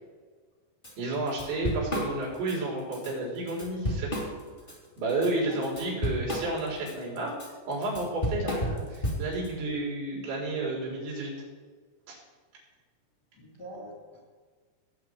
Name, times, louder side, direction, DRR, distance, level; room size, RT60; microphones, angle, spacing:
Drum kit / Drum, 0.8-0.9 1.3-2.6 2.9-3.1 3.5-4.7 5.1-9.5, equal, 15° left, 1.9 m, -32 dB
voice 1, 1.0-4.1 5.0-7.3 7.7-11.3 12.1-12.2, right 2 dB, 90° right, -4 dB, 6.3 m, -31 dB
voice 2, 5.5-6.0 13.4-14.2, right 1 dB, 35° left, -3 dB, 1.8 m, -45 dB
18.5 x 8.5 x 4.7 m, 1.5 s
omnidirectional pair, 5.1 m